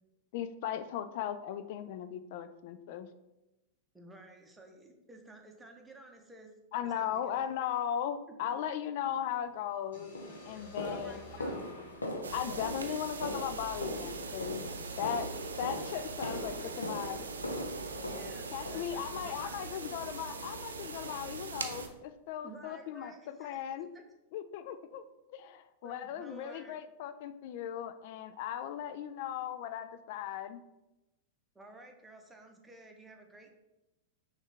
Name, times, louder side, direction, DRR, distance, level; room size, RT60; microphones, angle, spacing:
voice 1, 0.3-3.1 6.7-11.2 12.3-14.7 15.0-15.3 15.6-17.2 18.5-23.9 24.3-25.0 25.3-30.6, left 10 dB, 55° left, 11 dB, 0.3 m, -37 dB
voice 2, 3.9-6.5 6.8-7.5 8.3-8.4 10.5-11.7 18.0-19.6 22.4-23.5 23.9-24.0 25.8-26.8 31.5-33.5, right 2 dB, 10° right, 2 dB, 0.8 m, -53 dB
sound 1, 9.4-9.6 10.1-19.4 19.8-20.2 20.4-20.7 21.1-21.2 21.7-21.8 22.3-22.4, left 1 dB, 90° left, 0.7 m, -41 dB
sound 2, 9.9-13.8, equal, 75° left, 1.2 m, -54 dB
sound 3, 12.2-21.9, right 4 dB, 85° right, 0.5 m, -42 dB
6.3 x 2.4 x 3.4 m, 0.97 s
hypercardioid pair, 100°, 0 cm